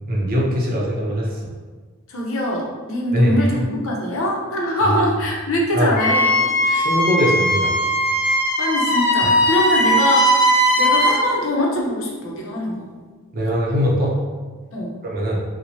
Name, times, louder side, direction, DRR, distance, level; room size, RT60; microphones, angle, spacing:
voice 1, 0.1-1.4 3.1-3.5 4.8-5.0 5.7-5.9 6.7-7.7 9.2-9.3 13.3-14.2 15.0-15.4, equal, 45° right, -2 dB, 0.6 m, -21 dB
voice 2, 2.1-6.9 8.6-12.9 14.7-14.9, equal, 65° left, -2 dB, 0.7 m, -23 dB
Wind instrument woodwind instrument, 6.0-11.2, equal, 50° left, 1.1 m, -18 dB
4.3 x 2.1 x 2.8 m, 1.4 s
head